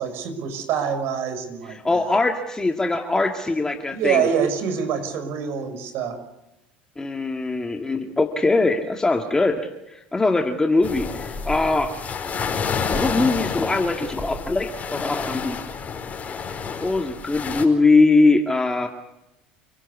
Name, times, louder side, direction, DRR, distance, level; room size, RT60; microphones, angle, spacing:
voice 1, 0.0-2.2 3.9-6.2, right 7 dB, 60° right, 8 dB, 6.1 m, -25 dB
voice 2, 1.8-4.3 7.0-11.9 12.9-15.6 16.5-18.9, left 3 dB, 15° left, 4 dB, 2.1 m, -21 dB
sound 1, 10.8-17.6, left 5 dB, 35° left, 5.0 m, -29 dB
29.0 x 17.5 x 8.4 m, 0.92 s
hypercardioid pair, 75°, 5 cm